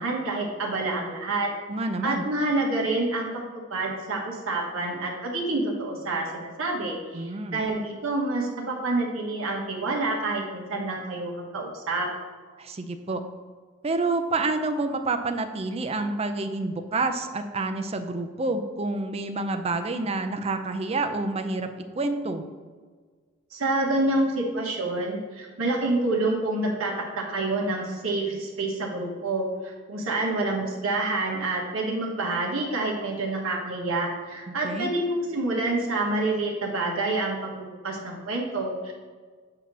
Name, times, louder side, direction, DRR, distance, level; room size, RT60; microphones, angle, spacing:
voice 1, 0.0-1.5 2.0-3.4 3.7-12.1 23.5-38.9, right 2 dB, 90° right, -2 dB, 1.3 m, -28 dB
voice 2, 1.7-2.2 7.1-7.6 12.6-13.2 13.8-22.4 34.5-34.9, right 3 dB, 30° right, 7 dB, 0.5 m, -28 dB
8.0 x 2.9 x 6.1 m, 1.5 s
head